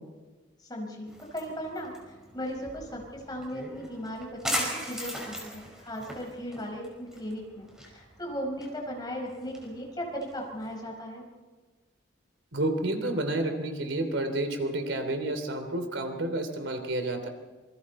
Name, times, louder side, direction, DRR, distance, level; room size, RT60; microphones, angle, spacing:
voice 1, 0.6-11.2, equal, 20° left, 0 dB, 5.0 m, -37 dB
sound 1, 1.1-10.7, equal, 5° right, 5.0 m, -39 dB
voice 2, 12.5-17.3, right 1 dB, 75° right, 6 dB, 3.0 m, -30 dB
27.0 x 24.5 x 4.3 m, 1.3 s
head